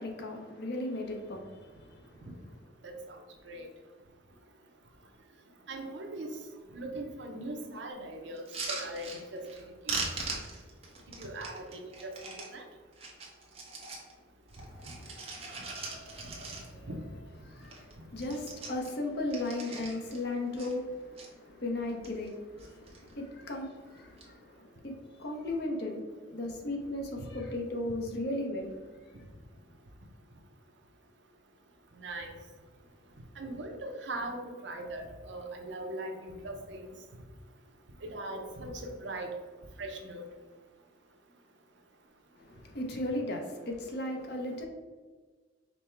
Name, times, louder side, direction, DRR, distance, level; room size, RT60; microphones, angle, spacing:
voice 1, 0.0-2.3 14.6-16.2 16.7-16.9 17.5-28.9 42.4-44.7, left 1 dB, 55° left, 0.8 m, -37 dB
voice 2, 2.8-3.7 5.7-6.3 6.7-9.4 9.9-10.0 11.2-12.6 16.2-16.3 16.9-17.0 32.0-32.3 33.4-36.9 38.0-39.3 39.8-40.3, right 1 dB, 65° right, 0.7 m, -40 dB
sound 1, 8.4-9.6 9.9-12.5 12.9-14.1 14.5-16.9 17.3-17.4 17.6-17.9 18.2-20.2 20.6-21.3 21.8-22.3 22.6-23.1 24.0-24.3, right 3 dB, 30° right, 0.9 m, -40 dB
5.2 x 2.2 x 4.4 m
head